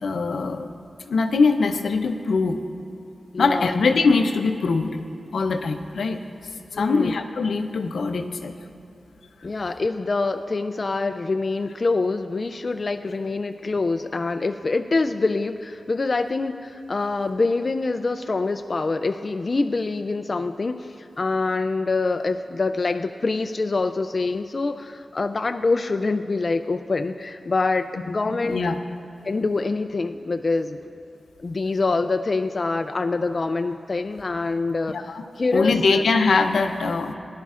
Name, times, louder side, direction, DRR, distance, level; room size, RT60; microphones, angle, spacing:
voice 1, 0.0-0.7 1.1-2.6 3.4-5.0 5.3-6.2 6.7-8.5 28.3-28.7 34.9-35.2 35.5-37.1, left 4 dB, 90° left, 6 dB, 0.6 m, -22 dB
voice 2, 3.3-3.7 6.7-7.2 9.4-28.7 29.2-30.8 31.4-36.0, left 3 dB, 45° left, 7 dB, 0.3 m, -25 dB
18.0 x 11.0 x 2.5 m, 2.8 s
wide cardioid pair, 80°, 0 cm